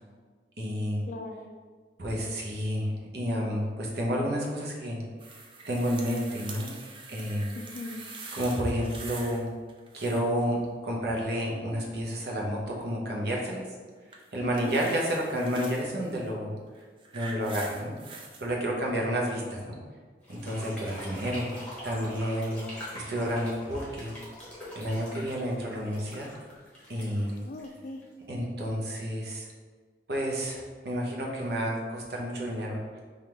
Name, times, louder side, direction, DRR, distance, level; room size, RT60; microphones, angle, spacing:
voice 1, 0.6-1.1 2.0-5.0 5.7-6.7 7.1-7.5 8.3-9.4 9.9-10.6 10.8-13.7 14.3-16.5 17.1-17.9 18.4-19.8 20.3-21.5 21.8-22.6 22.9-24.1 24.8-26.3 26.9-27.4 28.3-29.5 30.1-33.0, equal, 60° right, -2 dB, 0.8 m, -30 dB
voice 2, 1.1-1.5 7.6-8.0 14.4-14.7 18.9-19.0 21.1-21.2 27.4-28.0, left 3 dB, 45° left, 5 dB, 0.3 m, -39 dB
sound 1, 5.2-9.4 9.7-10.4 14.1-15.9 16.7-18.4 19.3-19.4, right 3 dB, 30° right, 0.4 m, -44 dB
sound 2, 20.2-28.2, equal, 5° left, 1.0 m, -44 dB
3.4 x 2.4 x 4.4 m, 1.5 s
head